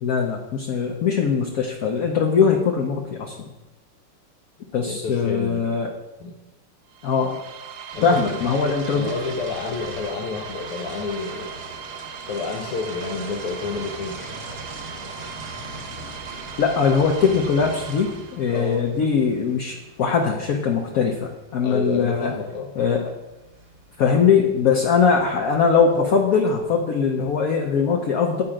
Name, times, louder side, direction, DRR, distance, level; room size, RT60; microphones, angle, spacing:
voice 1, 0.0-3.5 4.7-5.9 7.0-7.4 8.0-9.1 16.6-22.3 22.8-23.1 24.0-28.4, left 6 dB, 65° left, 0 dB, 0.9 m, -21 dB
voice 2, 4.9-5.7 6.2-6.3 7.9-8.4 8.9-11.5 12.3-14.2 18.5-18.8 21.6-22.7, left 4 dB, 90° left, 2 dB, 1.7 m, -29 dB
sound 1, 6.9-18.7, right 8 dB, 90° right, 1.7 m, -39 dB
sound 2, 7.9-26.2, right 1 dB, 35° right, 0.9 m, -41 dB
8.6 x 4.4 x 5.0 m, 1.1 s
omnidirectional pair, 2.4 m